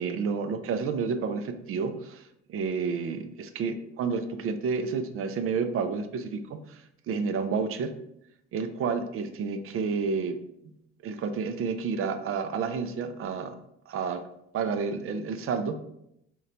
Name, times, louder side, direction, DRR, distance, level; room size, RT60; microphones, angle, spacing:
voice 1, 0.0-7.9 8.5-10.4 10.6-10.7 11.0-13.6 13.9-14.2 14.5-15.8, right 5 dB, 45° right, 9 dB, 0.4 m, -30 dB
3.7 x 2.2 x 2.6 m, 0.79 s
hypercardioid pair, 60°, 33 cm